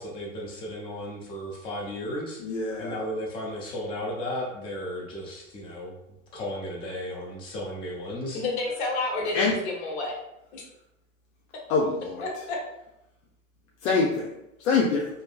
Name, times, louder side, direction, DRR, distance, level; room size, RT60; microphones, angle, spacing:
voice 1, 0.0-2.4 2.8-5.9 6.3-8.4, left 1 dB, 15° left, -3 dB, 0.3 m, -34 dB
voice 2, 2.4-3.0 9.3-9.6 11.7-12.2 13.8-14.3 14.6-15.0, left 4 dB, 80° left, -2 dB, 0.6 m, -24 dB
voice 3, 8.3-10.2 10.5-10.6 12.2-12.6, left 3 dB, 60° left, 0 dB, 0.9 m, -30 dB
2.7 x 2.5 x 2.3 m, 0.85 s
hypercardioid pair, 130°, 39 cm